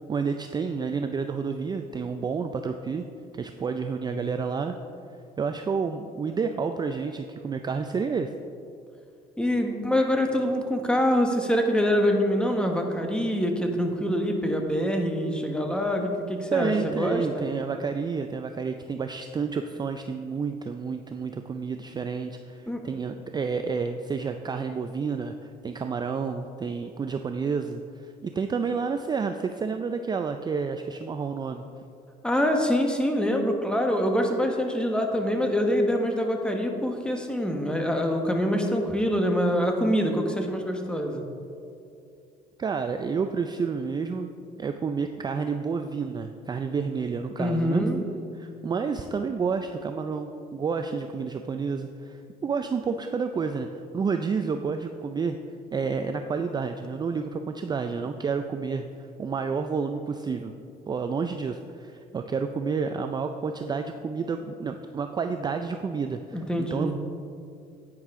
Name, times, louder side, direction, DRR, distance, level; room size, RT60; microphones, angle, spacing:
voice 1, 0.1-3.1 3.3-4.8 5.4-8.3 16.5-31.6 42.6-44.3 44.6-47.8 48.4-55.4 55.7-60.5 60.9-66.9, right 5 dB, 25° right, 7 dB, 0.4 m, -30 dB
voice 2, 9.4-17.4 22.7-22.9 32.2-41.2 47.4-48.0 66.3-66.9, equal, 5° left, 3 dB, 1.2 m, -25 dB
10.5 x 9.1 x 3.7 m, 2.5 s
cardioid pair, 110°, 17 cm